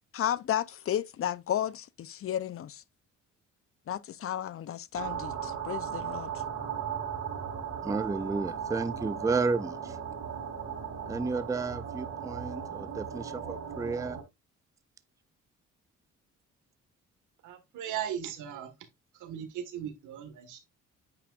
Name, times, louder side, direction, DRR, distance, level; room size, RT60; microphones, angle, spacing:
voice 1, 0.1-2.8 3.9-6.4, left 10 dB, 50° left, 0.5 m, -33 dB
sound 1, 4.9-14.2, right 7 dB, 65° right, 3.6 m, -37 dB
voice 2, 7.8-10.0 11.1-14.2, right 4 dB, 10° right, 0.4 m, -32 dB
voice 3, 17.4-18.7 19.2-20.6, right 9 dB, 85° right, 1.6 m, -37 dB
8.7 x 4.8 x 2.4 m
cardioid pair, 90°, 30 cm